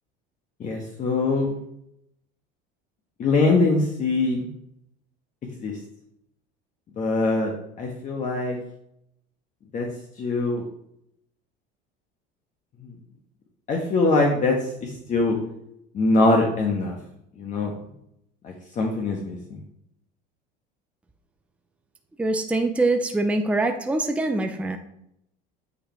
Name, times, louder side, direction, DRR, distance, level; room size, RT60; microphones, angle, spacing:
voice 1, 0.6-1.6 3.2-4.5 5.6-5.8 7.0-7.5 7.8-8.6 9.7-9.9 10.2-10.7 12.8-12.9 13.7-15.4 15.9-17.0 17.4-17.7 18.4-19.6, left 3 dB, 35° left, 0 dB, 1.4 m, -23 dB
voice 2, 22.2-24.8, right 2 dB, 5° right, 5 dB, 0.6 m, -24 dB
8.7 x 5.0 x 4.4 m, 0.76 s
cardioid pair, 135°, 21 cm